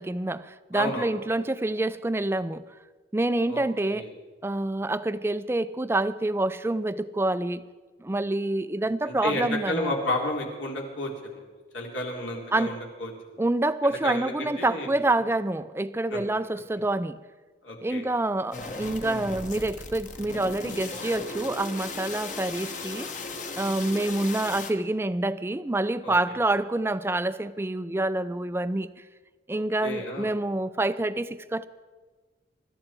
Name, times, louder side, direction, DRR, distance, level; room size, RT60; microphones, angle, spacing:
voice 1, 0.0-2.6 3.1-4.1 4.4-7.6 8.0-9.9 12.5-12.7 13.4-17.2 17.8-23.1 23.6-28.9 29.5-31.7, right 2 dB, 10° right, 14 dB, 0.4 m, -27 dB
voice 2, 0.7-1.1 3.5-4.1 9.0-11.4 11.7-13.1 14.0-14.9 16.1-16.2 17.6-18.0 26.0-26.1 29.5-30.3, left 1 dB, 75° left, -1 dB, 3.6 m, -32 dB
sound 1, 18.5-24.7, left 3 dB, 40° left, 1.3 m, -37 dB
24.5 x 13.0 x 4.5 m, 1.4 s
head